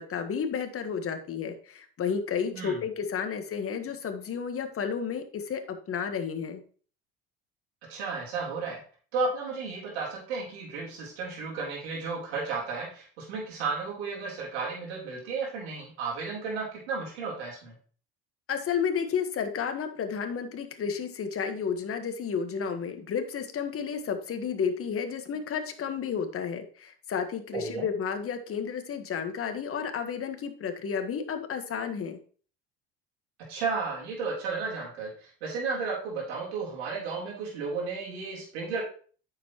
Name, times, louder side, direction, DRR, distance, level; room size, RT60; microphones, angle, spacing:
voice 1, 0.0-6.6 18.5-32.2, left 6 dB, 45° left, 7 dB, 1.5 m, -32 dB
voice 2, 2.5-2.8 7.9-8.8 9.1-17.7 27.5-27.9 33.5-38.8, right 4 dB, 85° right, -3 dB, 3.9 m, -33 dB
9.1 x 7.1 x 3.1 m, 0.42 s
hypercardioid pair, 70°, 32 cm